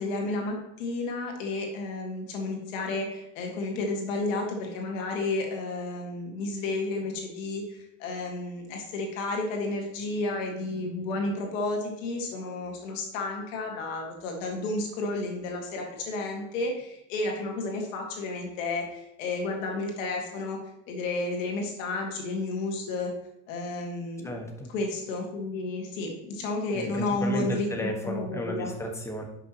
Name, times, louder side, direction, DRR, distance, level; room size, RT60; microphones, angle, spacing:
voice 1, 0.0-20.6 20.9-23.1 23.5-24.3 24.7-28.7, left 2 dB, 85° left, 1 dB, 2.0 m, -32 dB
voice 2, 24.2-24.7 26.7-29.2, equal, 5° left, 1 dB, 1.5 m, -33 dB
10.5 x 6.1 x 3.0 m, 0.84 s
supercardioid pair, 100°, 38 cm